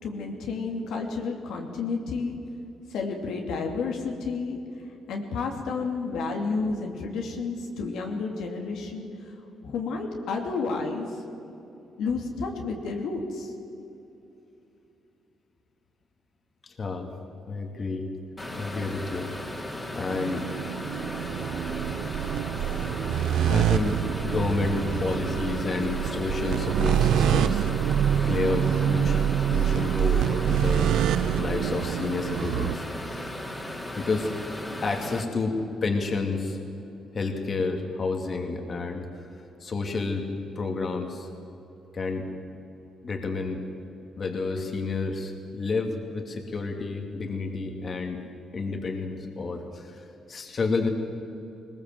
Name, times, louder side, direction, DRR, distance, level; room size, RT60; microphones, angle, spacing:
voice 1, 0.0-2.4 2.9-4.6 5.1-9.3 9.6-11.2 12.0-13.5, left 4 dB, 80° left, 1 dB, 2.7 m, -31 dB
voice 2, 16.6-17.1 17.5-18.1 18.6-19.3 19.9-20.5 23.5-27.6 28.3-30.9 31.4-33.4 33.9-34.3 34.8-36.6 37.1-39.2 39.6-40.2 40.6-41.3 41.9-42.2 43.0-43.6 44.2-48.2 48.5-50.9, left 3 dB, 40° left, 4 dB, 2.6 m, -30 dB
sound 1, 18.4-35.2, left 1 dB, 15° left, 3.2 m, -36 dB
sound 2, 20.1-32.7, right 9 dB, 80° right, 0.6 m, -26 dB
20.5 x 19.5 x 7.8 m, 2.9 s
cardioid pair, 90°, 0 cm